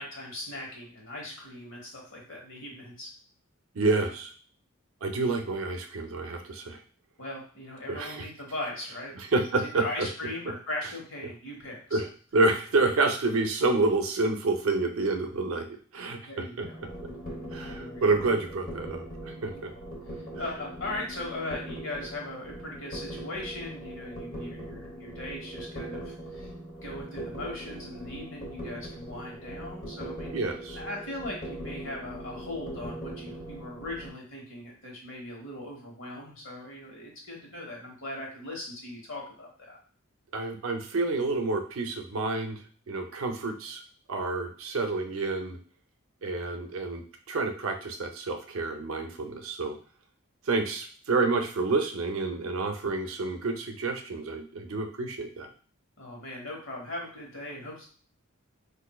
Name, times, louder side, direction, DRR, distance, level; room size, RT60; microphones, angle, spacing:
voice 1, 0.0-3.1 7.2-9.1 9.7-12.0 16.3-16.8 17.8-18.2 19.5-19.6 20.4-26.5 26.8-30.3 30.7-39.8 56.0-57.9, left 1 dB, 65° left, -1 dB, 1.2 m, -39 dB
voice 2, 3.7-4.3 5.0-6.8 7.9-8.3 9.2-10.1 11.9-12.0 12.3-15.7 15.9-16.7 17.5-19.1 19.4-19.7 30.3-30.8 40.3-42.6 42.9-43.8 44.1-45.6 46.2-49.8 50.5-55.5, right 3 dB, 75° right, 4 dB, 0.6 m, -28 dB
sound 1, 16.6-34.1, right 1 dB, 40° left, 1.0 m, -41 dB
4.1 x 2.5 x 2.3 m, 0.42 s
head